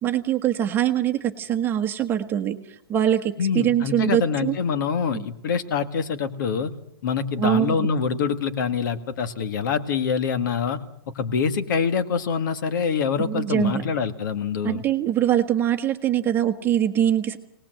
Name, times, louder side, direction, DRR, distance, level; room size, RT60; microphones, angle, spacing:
voice 1, 0.0-2.6 2.9-4.5 5.1-5.2 7.4-7.9 13.2-13.8 14.6-17.4, right 10 dB, 15° right, 5 dB, 1.3 m, -23 dB
voice 2, 3.4-6.7 7.0-10.8 11.1-14.8, left 6 dB, 50° left, 10 dB, 1.9 m, -25 dB
25.0 x 19.0 x 7.8 m, 0.75 s
hypercardioid pair, 160°, 13 cm